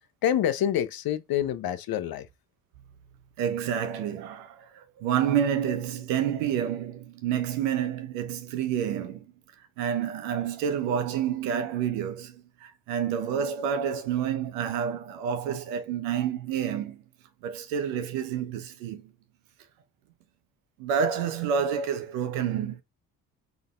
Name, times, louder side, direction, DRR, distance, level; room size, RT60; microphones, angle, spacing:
voice 1, 0.2-2.3, left 10 dB, 60° left, 0.7 m, -27 dB
voice 2, 3.4-9.3 9.8-17.0 17.4-19.1 20.8-22.8, right 8 dB, 90° right, 0.8 m, -29 dB
3.9 x 3.5 x 2.4 m
hypercardioid pair, 50°, 41 cm